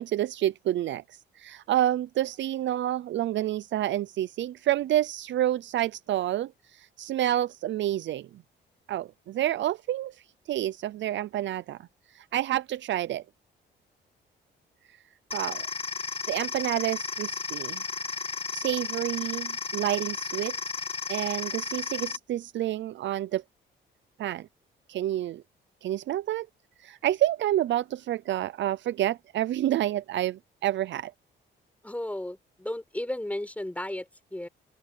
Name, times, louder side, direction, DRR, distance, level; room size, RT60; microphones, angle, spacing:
voice 1, 0.0-8.4 8.9-11.8 12.1-13.2 14.9-15.0 15.3-15.7 16.3-17.8 18.5-20.6 21.1-23.4 24.2-24.5 24.9-25.4 25.8-26.5 26.8-31.1, right 13 dB, 65° right, 0.6 m, -29 dB
sound 1, 15.3-22.2, left 5 dB, 30° left, 1.9 m, -34 dB
voice 2, 31.8-34.5, left 1 dB, 5° left, 5.0 m, -34 dB
open air
cardioid pair, 90°, 20 cm